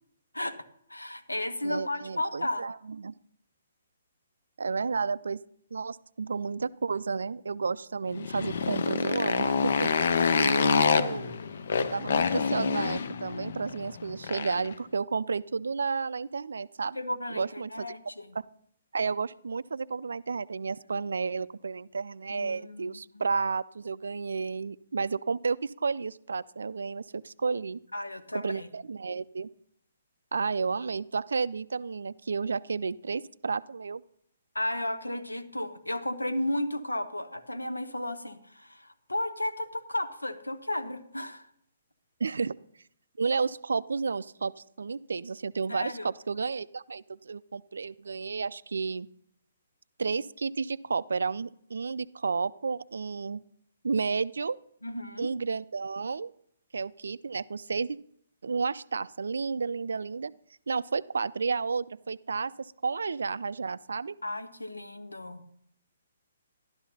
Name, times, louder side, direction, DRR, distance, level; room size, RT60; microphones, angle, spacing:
voice 1, 0.9-2.6 8.2-8.3 16.9-18.3 22.3-23.3 27.9-28.7 34.5-41.5 45.7-46.1 54.8-55.3 64.2-65.4, left 1 dB, 85° left, 10 dB, 0.9 m, -34 dB
voice 2, 1.6-3.1 4.6-5.4 5.7-9.9 10.4-11.4 11.8-17.0 17.3-17.9 18.4-18.5 18.9-27.8 28.3-29.5 30.3-34.0 42.2-42.5 43.2-49.1 50.0-53.4 53.8-54.6 55.2-56.3 56.7-58.0 58.4-60.3 60.7-64.2, right 4 dB, 65° right, 18 dB, 0.3 m, -32 dB
Motorcycle, 8.1-14.7, left 5 dB, 55° left, 0.6 m, -27 dB
12.5 x 12.0 x 2.8 m, 0.69 s
figure-of-eight pair, 130°, 0 cm